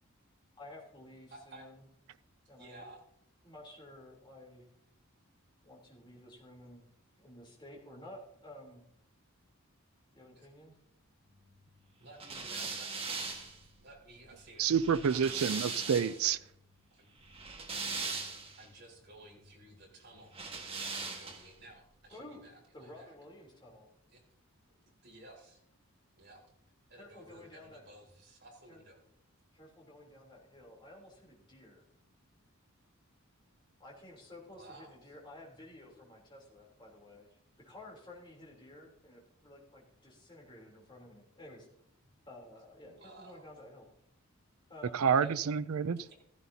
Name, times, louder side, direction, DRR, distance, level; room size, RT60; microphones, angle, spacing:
voice 1, 0.6-1.8 2.5-2.8 3.4-4.7 5.6-6.9 7.2-8.9 10.1-10.7 22.1-22.5 22.7-23.9 27.0-27.9 28.7-28.8 29.5-31.8 33.8-37.4 37.6-41.7 42.3-43.9 44.7-45.1, left 1 dB, 20° left, -3 dB, 3.3 m, -52 dB
voice 2, 1.3-1.7 2.6-3.0 12.0-12.9 13.8-14.7 15.5-16.1 16.9-17.1 18.6-23.1 24.1-24.2 25.0-25.6 26.2-26.4 26.9-29.0 34.5-35.1 42.8-43.6 45.0-45.4 46.0-46.1, right 2 dB, 50° right, -3 dB, 4.3 m, -55 dB
sound 1, 12.2-16.3 17.2-18.7 20.3-21.6, right 4 dB, 25° right, 1.5 m, -40 dB
voice 3, 14.6-16.4 44.9-46.0, right 7 dB, 80° right, 15 dB, 0.4 m, -28 dB
15.5 x 14.0 x 2.8 m, 0.74 s
head